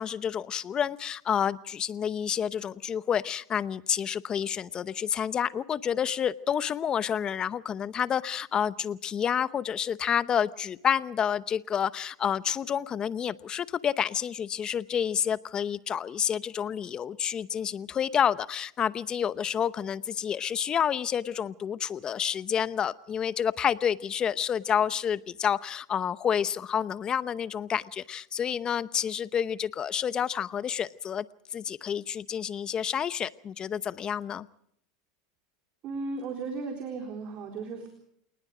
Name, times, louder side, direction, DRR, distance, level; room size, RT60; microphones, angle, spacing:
voice 1, 0.0-31.3 31.5-34.5, left 8 dB, 30° left, 16 dB, 0.8 m, -29 dB
voice 2, 35.8-37.9, right 4 dB, 45° right, 3 dB, 3.9 m, -35 dB
27.5 x 19.5 x 5.0 m, 0.70 s
supercardioid pair, 115°, 3 cm